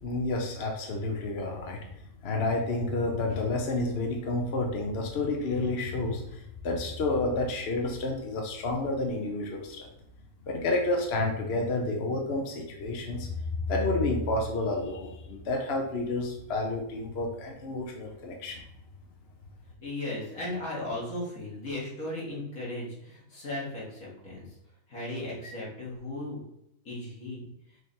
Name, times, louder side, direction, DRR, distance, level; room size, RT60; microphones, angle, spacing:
voice 1, 0.0-1.9 2.2-9.9 10.5-13.3 13.7-18.6, left 2 dB, 50° left, 2 dB, 1.1 m, -30 dB
voice 2, 19.8-24.4 24.9-26.4 26.8-27.5, left 1 dB, 85° left, -5 dB, 2.8 m, -36 dB
6.5 x 3.4 x 4.3 m, 0.79 s
omnidirectional pair, 1.4 m